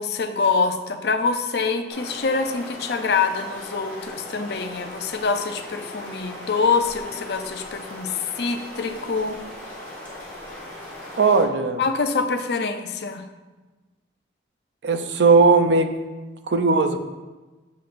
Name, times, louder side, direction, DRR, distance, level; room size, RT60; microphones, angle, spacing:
voice 1, 0.0-8.1 8.4-9.4 11.8-13.2, left 4 dB, 70° left, 7 dB, 0.5 m, -25 dB
sound 1, 1.9-11.4, left 1 dB, 10° left, 1.7 m, -38 dB
voice 2, 11.2-11.8 14.8-15.9 16.5-17.0, right 4 dB, 80° right, 8 dB, 0.5 m, -17 dB
7.3 x 5.8 x 2.5 m, 1.2 s
head